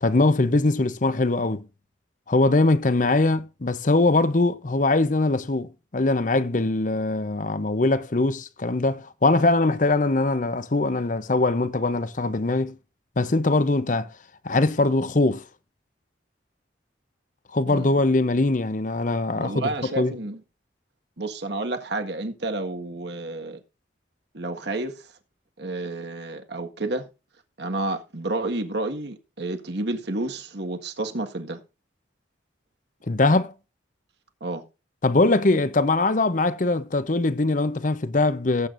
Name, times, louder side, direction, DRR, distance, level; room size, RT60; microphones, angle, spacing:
voice 1, 0.0-1.7 2.3-12.8 13.2-14.1 14.4-15.4 17.5-20.2 33.1-33.5 35.0-38.7, left 2 dB, 45° left, 0.7 m, -22 dB
voice 2, 19.3-20.4 21.2-23.6 24.3-24.9 25.6-27.1 27.6-31.6 34.4-34.6, right 2 dB, 65° right, 1.7 m, -30 dB
18.0 x 8.4 x 2.6 m
head